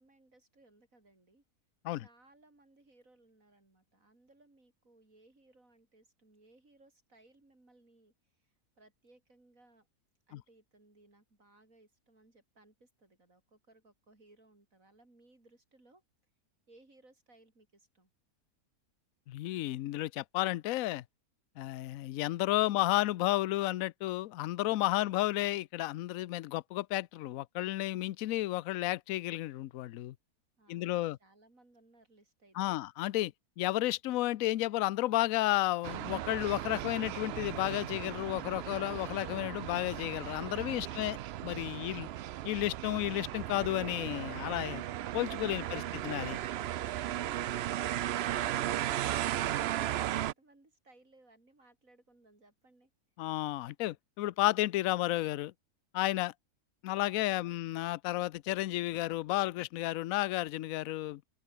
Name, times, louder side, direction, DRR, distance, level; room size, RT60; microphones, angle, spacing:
voice 1, 0.0-1.4 2.0-8.1 8.4-9.9 10.3-16.0 16.7-18.1 22.6-22.9 24.9-25.3 30.6-32.9 46.3-52.9 57.3-57.8, right 2 dB, 55° right, 6.5 m, -63 dB
voice 2, 19.3-21.0 21.6-30.1 30.7-31.2 32.5-41.2 41.4-42.1 42.5-44.8 45.1-46.4 53.2-55.5 55.9-56.3 56.8-61.3, left 16 dB, 70° left, 1.0 m, -32 dB
sound 1, 35.8-50.3, right 12 dB, 85° right, 0.5 m, -36 dB
open air
omnidirectional pair, 1.6 m